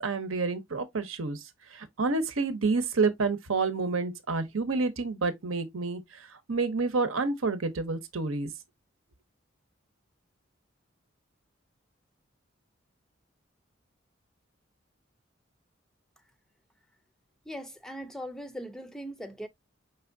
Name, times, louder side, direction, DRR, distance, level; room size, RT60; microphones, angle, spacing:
voice 1, 0.0-1.4 1.7-6.0 6.5-8.5, right 4 dB, 85° right, 0.9 m, -29 dB
voice 2, 17.5-19.5, equal, 5° left, 0.4 m, -40 dB
5.4 x 3.4 x 2.6 m
head